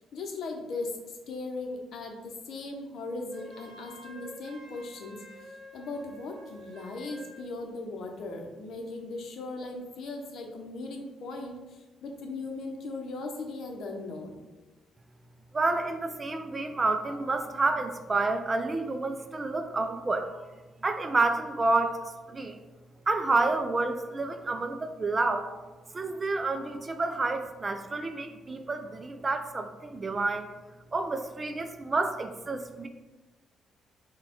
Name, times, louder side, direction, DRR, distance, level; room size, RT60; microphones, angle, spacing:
voice 1, 0.0-14.4, left 3 dB, 70° left, 2 dB, 0.7 m, -38 dB
Wind instrument woodwind instrument, 3.3-7.5, equal, 55° right, 0.9 m, -49 dB
voice 2, 15.5-20.3 20.8-22.6 23.1-25.6 25.9-30.5 30.9-32.9, right 3 dB, 30° right, 7 dB, 0.4 m, -29 dB
4.1 x 2.3 x 4.3 m, 1.2 s
cardioid pair, 90°, 0 cm